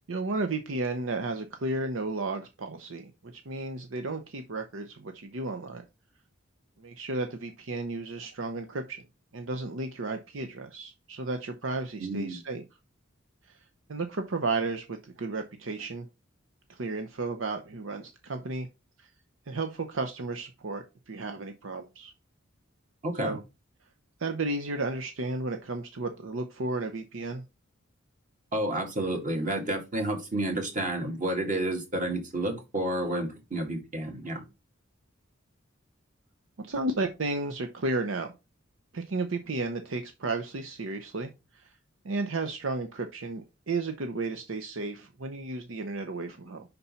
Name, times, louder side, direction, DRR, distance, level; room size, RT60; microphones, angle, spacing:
voice 1, 0.1-5.8 6.8-9.0 9.3-12.6 13.9-16.1 16.7-18.7 19.0-19.1 19.5-22.1 23.2-23.4 24.2-27.4 36.6-38.3 38.9-41.6 42.0-46.6, right 3 dB, 75° right, 6 dB, 0.7 m, -33 dB
voice 2, 12.0-12.4 23.0-23.4 28.5-34.4, right 1 dB, 40° right, 2 dB, 2.2 m, -30 dB
5.3 x 4.2 x 5.6 m, 0.26 s
head